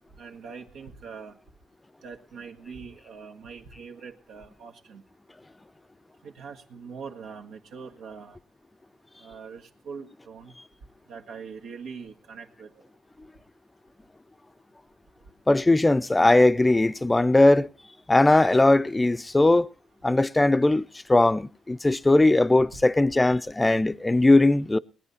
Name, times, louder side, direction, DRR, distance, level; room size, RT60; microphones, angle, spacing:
voice 1, 0.2-1.3 2.0-5.0 6.2-8.4 9.2-10.5 11.1-12.7, right 5 dB, 80° right, 1.7 m, -42 dB
voice 2, 15.5-17.7 18.1-19.7 20.0-24.8, left 2 dB, 15° left, 0.5 m, -19 dB
20.0 x 9.9 x 4.2 m
cardioid pair, 90°, 0 cm